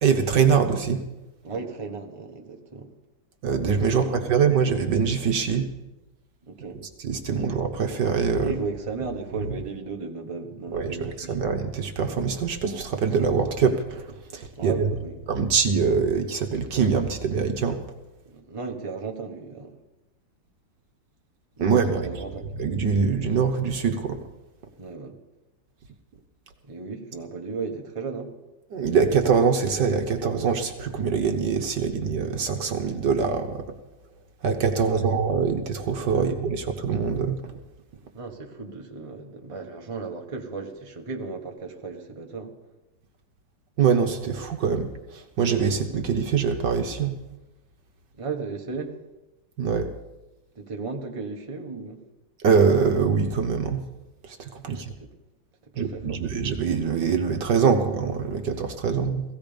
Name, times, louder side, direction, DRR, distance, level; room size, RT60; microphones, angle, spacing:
voice 1, 0.0-1.0 3.4-5.7 7.0-8.5 10.7-14.9 15.3-17.8 21.6-22.1 22.6-24.2 28.7-33.6 34.4-37.4 43.8-47.2 49.6-49.9 52.4-53.8 54.2-54.9 55.8-59.2, right 6 dB, 65° right, 5 dB, 1.6 m, -24 dB
voice 2, 1.4-2.9 3.9-4.2 6.5-6.8 8.4-11.4 14.5-15.2 18.3-19.7 21.6-22.6 24.8-25.2 26.6-28.3 34.8-35.1 36.1-36.3 38.1-42.5 48.2-48.9 50.5-52.0 54.6-55.1 55.7-56.4, right 4 dB, 20° right, 2 dB, 1.4 m, -35 dB
17.5 x 15.5 x 5.2 m, 1.0 s
omnidirectional pair, 2.1 m